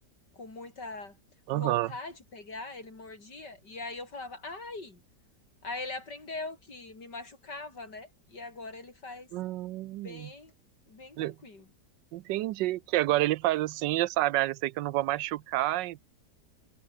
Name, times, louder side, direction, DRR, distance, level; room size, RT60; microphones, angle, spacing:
voice 1, 0.3-1.2 1.5-5.0 5.6-9.3 10.0-10.5 10.9-11.7, left 3 dB, 70° left, 5.8 m, -41 dB
voice 2, 1.5-1.9 9.3-10.3 11.2-11.4 12.1-16.0, right 16 dB, 90° right, 1.3 m, -29 dB
omnidirectional pair, 1.9 m